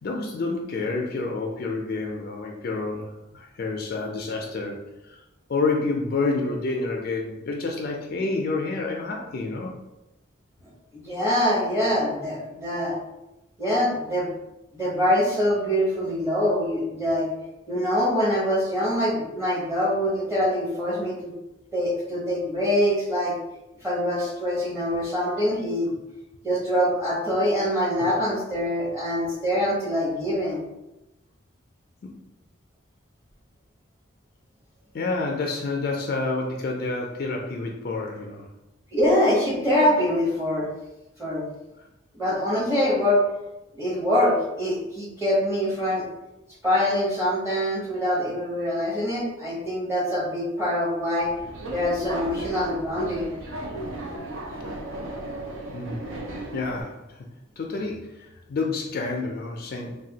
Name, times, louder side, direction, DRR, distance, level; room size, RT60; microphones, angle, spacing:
voice 1, 0.0-3.1 3.3-4.8 5.0-5.2 5.5-9.7 34.9-38.5 55.7-56.0 56.5-57.2 57.6-60.0, left 3 dB, 50° left, 0 dB, 0.3 m, -28 dB
voice 2, 10.9-12.9 13.6-14.3 14.7-17.3 17.7-21.3 21.7-23.3 23.8-25.9 26.4-30.6 38.9-40.7 41.2-41.4 42.1-43.2 43.8-46.0 46.6-51.3 51.7-53.3, equal, 15° right, -6 dB, 0.8 m, -24 dB
Subway metro underground, 51.2-56.8, right 1 dB, 85° right, 0.5 m, -35 dB
3.2 x 2.2 x 2.7 m, 0.95 s
head